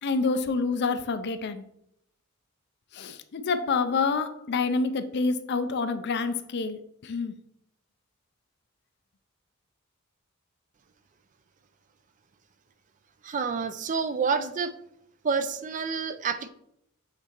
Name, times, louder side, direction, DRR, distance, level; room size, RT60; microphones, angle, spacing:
voice 1, 0.0-1.6 2.9-7.4, left 4 dB, 50° left, 0.5 m, -27 dB
voice 2, 13.2-14.7 15.2-16.5, right 5 dB, 35° right, 0.4 m, -28 dB
7.7 x 4.1 x 3.0 m
head